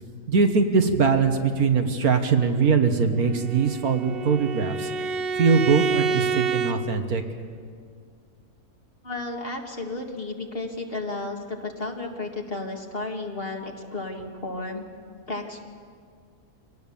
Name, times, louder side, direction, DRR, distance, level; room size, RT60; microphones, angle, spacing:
voice 1, 0.3-7.2, right 5 dB, 75° right, 5 dB, 1.9 m, -22 dB
Bowed string instrument, 3.2-6.8, right 5 dB, 50° right, 0.9 m, -28 dB
voice 2, 9.0-14.8 15.3-15.6, left 2 dB, 40° left, 2 dB, 2.1 m, -33 dB
25.5 x 18.0 x 7.1 m, 2.1 s
omnidirectional pair, 1.6 m